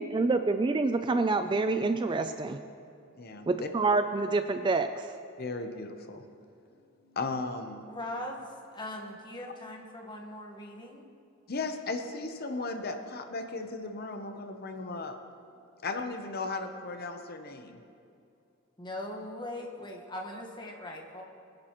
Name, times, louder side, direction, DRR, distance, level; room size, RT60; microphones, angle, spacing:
voice 1, 0.0-2.6 3.5-5.1, right 3 dB, 20° right, 8 dB, 0.3 m, -27 dB
voice 2, 3.2-3.7 5.4-6.2 7.1-7.9 11.5-15.2 15.8-17.8, left 3 dB, 45° left, 6 dB, 0.8 m, -36 dB
voice 3, 7.9-11.0 18.8-21.2, left 1 dB, 20° left, 1 dB, 1.3 m, -40 dB
22.5 x 10.5 x 3.0 m, 2.5 s
head